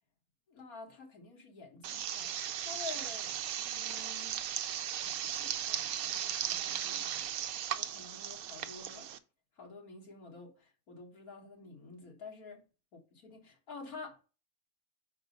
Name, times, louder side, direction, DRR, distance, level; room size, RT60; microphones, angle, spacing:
voice 1, 0.5-4.4 5.0-9.1 9.6-12.6 12.9-14.2, left 4 dB, 80° left, 2.2 m, -50 dB
sound 1, 1.8-9.2, right 10 dB, 80° right, 1.1 m, -37 dB
5.1 x 4.5 x 5.2 m
omnidirectional pair, 1.5 m